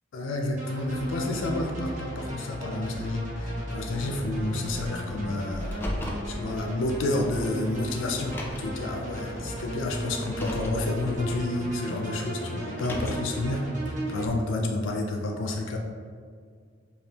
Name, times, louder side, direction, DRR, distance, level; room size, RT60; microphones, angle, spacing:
voice 1, 0.1-5.8 6.3-13.6 14.1-15.8, left 2 dB, 80° left, 2 dB, 0.4 m, -30 dB
sound 1, 0.6-14.3, right 1 dB, 40° right, 0.8 m, -36 dB
Car, 5.6-6.3 7.4-7.5 8.2-8.8 10.1-10.8 12.6-13.4, left 1 dB, 10° left, 0.3 m, -35 dB
5.1 x 2.3 x 2.8 m, 2.1 s
head